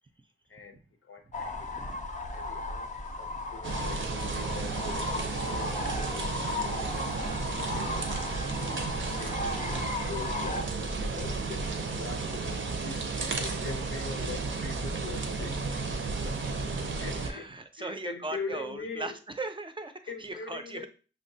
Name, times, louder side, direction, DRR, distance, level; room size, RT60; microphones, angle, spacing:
voice 1, 0.5-1.7 2.3-2.9 3.2-7.1 7.5-7.9 8.6-15.6 16.2-16.5 17.0-19.2 20.1-20.9, left 5 dB, 85° left, 6 dB, 0.5 m, -43 dB
sound 1, 1.3-10.6, left 2 dB, 35° left, 0.5 m, -36 dB
voice 2, 1.4-2.0 17.3-20.9, right 2 dB, 25° right, 7 dB, 0.4 m, -39 dB
sound 2, 3.6-17.3, right 4 dB, 70° right, 0.5 m, -33 dB
5.4 x 2.2 x 2.6 m, 0.37 s
wide cardioid pair, 95°, 21 cm